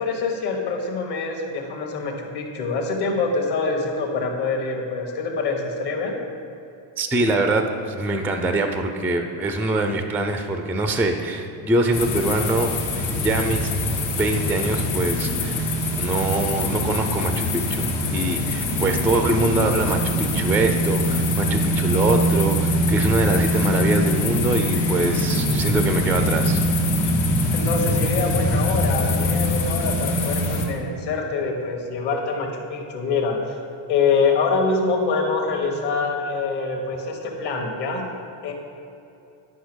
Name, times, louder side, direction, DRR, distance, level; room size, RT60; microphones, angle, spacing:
voice 1, 0.0-6.2 27.5-33.6 33.9-38.1 38.4-38.5, left 4 dB, 50° left, 2 dB, 1.6 m, -25 dB
voice 2, 7.0-12.7 12.9-13.7 14.1-26.6, right 2 dB, 5° right, 6 dB, 0.3 m, -24 dB
sound 1, 11.9-30.7, left 1 dB, 75° left, 1.8 m, -23 dB
10.5 x 5.3 x 6.2 m, 2.8 s
cardioid pair, 145°, 49 cm